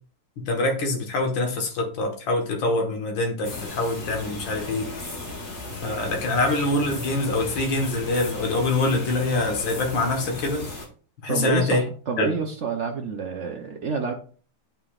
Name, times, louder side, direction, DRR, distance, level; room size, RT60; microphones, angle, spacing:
voice 1, 0.5-4.9 5.8-10.7 11.2-11.8 12.2-12.3, left 2 dB, 70° left, 2 dB, 2.1 m, -25 dB
sound 1, 3.4-10.9, left 2 dB, 35° left, 1.6 m, -36 dB
voice 2, 11.3-14.1, right 5 dB, 65° right, 3 dB, 0.7 m, -28 dB
9.2 x 5.8 x 2.4 m, 0.41 s
omnidirectional pair, 2.2 m